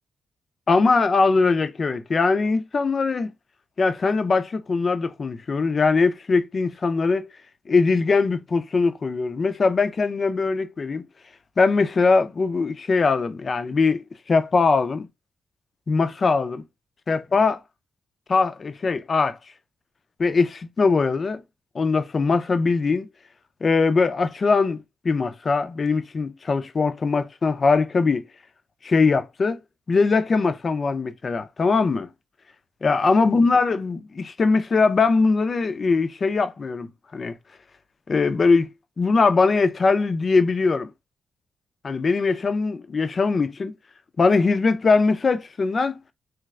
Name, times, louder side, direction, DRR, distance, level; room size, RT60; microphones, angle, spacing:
voice 1, 0.7-3.3 3.8-7.3 7.7-11.0 11.6-15.1 15.9-16.6 17.1-17.6 18.3-19.4 20.2-21.4 21.7-23.1 23.6-28.2 28.8-29.6 29.9-32.1 32.8-37.4 38.1-38.7 39.0-40.9 41.8-43.7 44.2-45.9, left 4 dB, 40° left, 0.4 m, -21 dB
3.2 x 2.4 x 3.1 m
cardioid pair, 105°, 0 cm